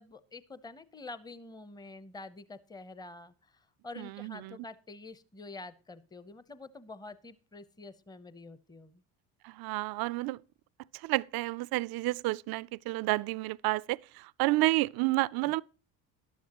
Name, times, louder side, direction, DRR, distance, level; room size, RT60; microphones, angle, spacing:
voice 1, 0.0-9.0 15.2-15.3, left 3 dB, 10° left, 0.8 m, -47 dB
voice 2, 4.0-4.5 9.4-10.4 10.9-15.6, right 20 dB, 60° right, 0.5 m, -30 dB
12.5 x 11.5 x 2.9 m
supercardioid pair, 80°, 41 cm